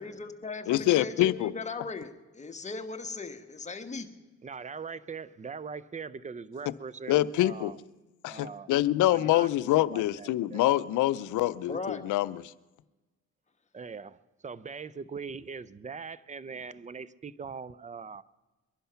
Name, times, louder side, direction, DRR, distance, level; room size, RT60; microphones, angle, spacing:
voice 1, 0.0-4.1 11.6-12.0, left 3 dB, 25° left, 6 dB, 1.3 m, -38 dB
voice 2, 0.7-1.5 7.1-7.7 8.2-12.4, left 15 dB, 80° left, 17 dB, 0.6 m, -25 dB
voice 3, 4.4-7.8 8.3-8.8 9.1-10.7 13.7-18.2, right 5 dB, 25° right, 19 dB, 0.5 m, -41 dB
22.5 x 11.5 x 5.7 m, 1.2 s
cardioid pair, 90°, 30 cm